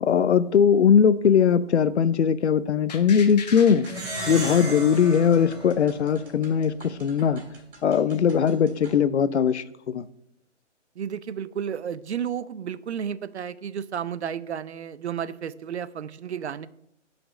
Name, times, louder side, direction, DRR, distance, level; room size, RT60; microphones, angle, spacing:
voice 1, 0.0-3.8 4.3-7.4 7.8-10.1, left 7 dB, 65° left, 0.6 m, -20 dB
sound 1, 2.9-5.8 6.2-6.3, left 6 dB, 35° left, 0.9 m, -40 dB
sound 2, 3.1-9.0, right 2 dB, 45° right, 2.8 m, -52 dB
Plucked string instrument, 3.8-6.6, right 1 dB, 5° right, 2.2 m, -35 dB
voice 2, 11.0-16.7, right 8 dB, 65° right, 0.5 m, -32 dB
5.9 x 5.1 x 6.1 m
figure-of-eight pair, 150°, 36 cm